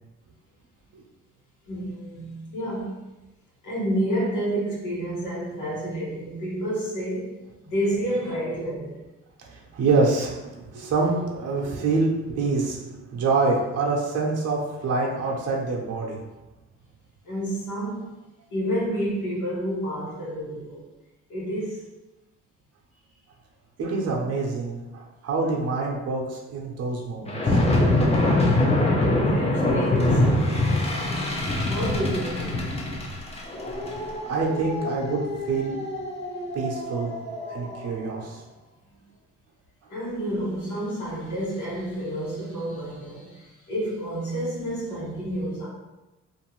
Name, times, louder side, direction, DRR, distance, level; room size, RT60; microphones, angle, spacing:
voice 1, 1.7-3.0 3.6-7.3 7.6-8.9 17.2-18.1 18.5-20.9 21.3-21.9 28.2-31.3 31.7-32.7 39.9-45.7, right 1 dB, 85° left, -7 dB, 1.3 m, -30 dB
voice 2, 9.5-12.8 13.1-16.2 23.8-27.6 34.3-35.8 36.5-37.1 37.5-38.4, right 3 dB, 55° right, -2 dB, 0.7 m, -26 dB
sound 1, 27.3-37.9, left 1 dB, 20° left, 0.6 m, -24 dB
2.6 x 2.5 x 3.0 m, 1.0 s
cardioid pair, 90°, 30 cm